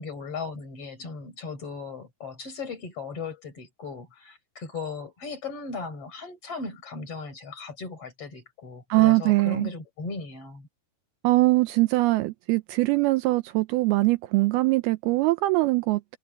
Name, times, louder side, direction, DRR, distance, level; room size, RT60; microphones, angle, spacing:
voice 1, 0.0-10.7, left 4 dB, 35° left, 5.4 m, -37 dB
voice 2, 8.9-9.7 11.2-16.2, right 20 dB, 80° right, 2.3 m, -22 dB
omnidirectional pair, 4.8 m